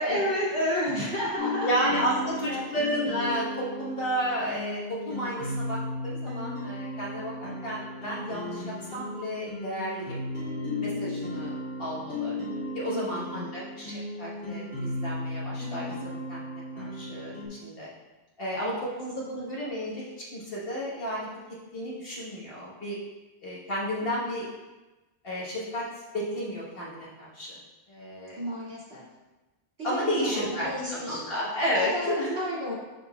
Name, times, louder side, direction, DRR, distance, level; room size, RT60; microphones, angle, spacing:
voice 1, 0.0-2.6 12.8-13.6 18.6-18.8 24.0-24.4 28.4-29.0 29.8-31.2 31.5-32.7, equal, 65° right, -8 dB, 2.5 m, -32 dB
sound 1, 1.4-17.5, left 1 dB, 70° left, 2.4 m, -35 dB
voice 2, 1.6-8.6 8.9-10.2 10.8-12.3 12.7-17.9 18.4-21.3 21.7-23.0 23.4-24.5 25.2-25.8 26.1-27.6 27.9-28.4 29.8-32.4, equal, 50° left, -6 dB, 1.6 m, -32 dB
11.0 x 3.9 x 2.3 m, 1.1 s
omnidirectional pair, 1.2 m